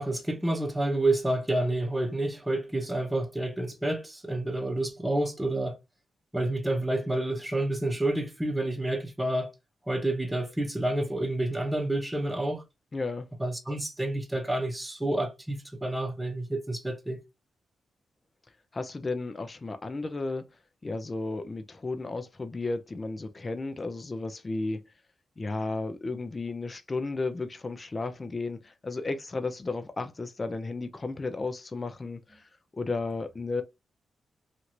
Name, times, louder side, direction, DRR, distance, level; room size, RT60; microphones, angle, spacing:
voice 1, 0.0-5.8 6.3-9.5 9.9-12.6 13.4-17.2, right 1 dB, 10° right, 1.0 m, -29 dB
voice 2, 12.9-13.2 18.7-20.5 20.8-24.9 25.4-33.6, left 3 dB, 35° left, 0.6 m, -33 dB
2.9 x 2.6 x 2.9 m
cardioid pair, 70°, 0 cm